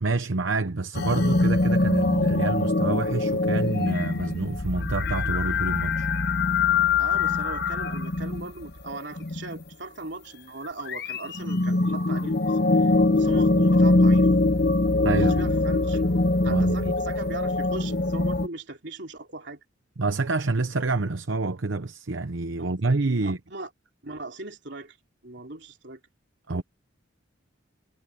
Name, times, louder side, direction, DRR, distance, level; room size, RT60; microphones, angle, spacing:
voice 1, 0.0-6.1 15.0-15.4 16.5-16.9 20.0-23.4 26.5-26.6, right 3 dB, 75° right, 0.9 m, -27 dB
sound 1, 0.9-9.6 10.6-18.5, left 2 dB, 55° left, 1.0 m, -23 dB
voice 2, 7.0-12.9 13.2-14.3 15.2-16.0 16.4-19.6 23.1-23.7 24.0-25.0 25.2-26.0 26.5-26.6, right 2 dB, 60° right, 3.6 m, -39 dB
head